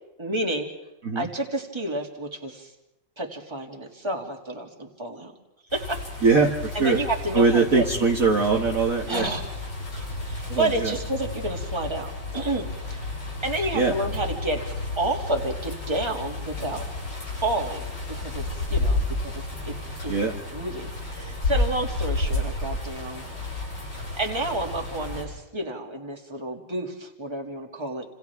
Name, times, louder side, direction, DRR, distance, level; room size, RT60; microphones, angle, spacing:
voice 1, 0.2-0.7 1.1-2.7 3.2-5.3 5.7-6.2 6.7-7.8 9.1-9.6 9.9-13.1 13.4-14.6 15.0-16.9 17.4-17.9 18.2-18.4 18.7-19.7 20.0-20.1 20.5-23.2 23.9-28.1, right 1 dB, 15° right, 1 dB, 2.3 m, -30 dB
sound 1, 5.7-25.2, left 2 dB, 90° left, 8.8 m, -32 dB
voice 2, 6.2-7.0 7.3-9.3 10.5-10.9 13.7-13.9 20.1-20.3, right 4 dB, 50° right, 1 dB, 1.7 m, -21 dB
29.0 x 27.5 x 3.5 m, 0.91 s
omnidirectional pair, 2.1 m